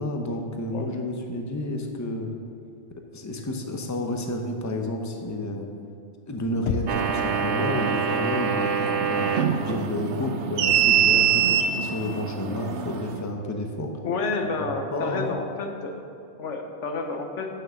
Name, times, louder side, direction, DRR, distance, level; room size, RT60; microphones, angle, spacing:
voice 1, 0.0-2.3 3.1-5.7 6.3-9.3 9.6-13.9 14.6-15.3, left 1 dB, 20° left, 3 dB, 0.7 m, -30 dB
Knock, 6.7-7.3, left 7 dB, 60° left, 0.6 m, -30 dB
sound 1, 6.9-13.2, right 8 dB, 75° right, 0.9 m, -24 dB
voice 2, 14.0-16.1 16.4-17.5, left 3 dB, 90° left, 4 dB, 1.3 m, -30 dB
9.2 x 6.6 x 6.3 m, 2.4 s
omnidirectional pair, 1.2 m